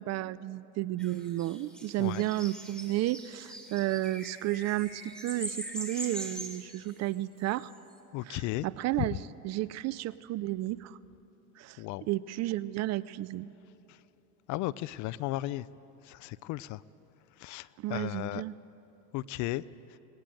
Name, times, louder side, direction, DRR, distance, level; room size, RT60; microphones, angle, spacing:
voice 1, 0.0-7.7 8.2-11.0 11.6-11.8 12.1-13.5 17.8-18.5, right 16 dB, 40° right, 18 dB, 0.4 m, -32 dB
sound 1, 1.0-7.8, equal, ahead, 3.0 m, -42 dB
voice 2, 8.1-8.7 9.0-9.1 11.8-12.0 14.5-15.6 16.1-16.8 17.4-18.4 19.1-19.6, left 17 dB, 45° left, 20 dB, 0.4 m, -34 dB
19.5 x 18.0 x 7.7 m, 3.0 s
supercardioid pair, 100°, 44 cm